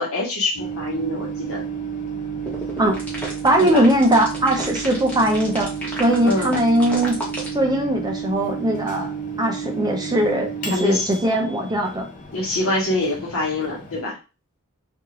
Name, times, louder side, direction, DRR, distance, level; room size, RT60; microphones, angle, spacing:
voice 1, 0.0-1.6 3.6-3.8 6.2-6.5 10.7-11.1 12.3-14.2, left 1 dB, 70° left, -2 dB, 1.2 m, -24 dB
Microwave oven, 0.6-14.0, right 6 dB, 35° left, 0.6 m, -32 dB
sound 1, 2.5-7.5, equal, 5° left, 0.8 m, -32 dB
voice 2, 3.4-5.7 6.0-7.2 7.5-9.1 9.4-12.1, right 1 dB, 20° right, 2 dB, 0.5 m, -20 dB
2.6 x 2.5 x 2.9 m, 0.31 s
head